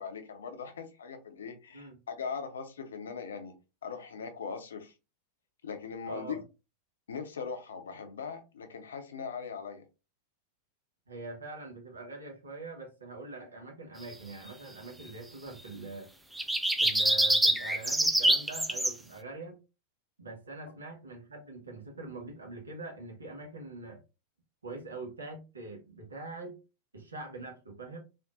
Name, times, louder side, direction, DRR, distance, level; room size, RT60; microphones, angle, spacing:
voice 1, 0.0-3.5 3.8-4.9 5.6-6.4 7.1-9.8, left 6 dB, 65° left, 0.6 m, -40 dB
voice 2, 6.0-6.4 11.1-16.1 16.8-19.6 20.2-24.0 24.6-26.6 26.9-28.0, right 3 dB, 75° right, 1.0 m, -43 dB
sound 1, 16.4-18.9, right 1 dB, 5° right, 0.4 m, -25 dB
3.5 x 2.6 x 2.4 m
figure-of-eight pair, 90°, 0 cm